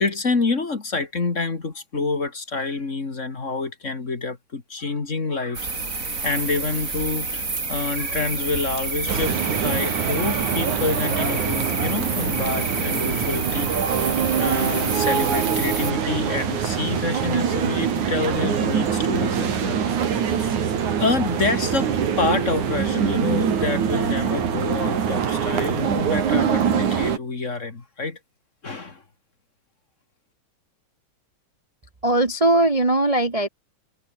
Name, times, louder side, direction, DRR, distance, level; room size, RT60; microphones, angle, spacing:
voice 1, 0.0-9.3 9.6-14.1 14.4-20.6 21.0-28.2 28.6-29.0, left 3 dB, 25° left, 2.2 m, -27 dB
sound 1, 5.5-15.9, right 3 dB, 25° right, 3.7 m, -29 dB
sound 2, 9.1-27.2, right 7 dB, 85° right, 4.1 m, -24 dB
voice 2, 32.0-33.5, right 1 dB, 55° right, 0.3 m, -19 dB
omnidirectional pair, 3.4 m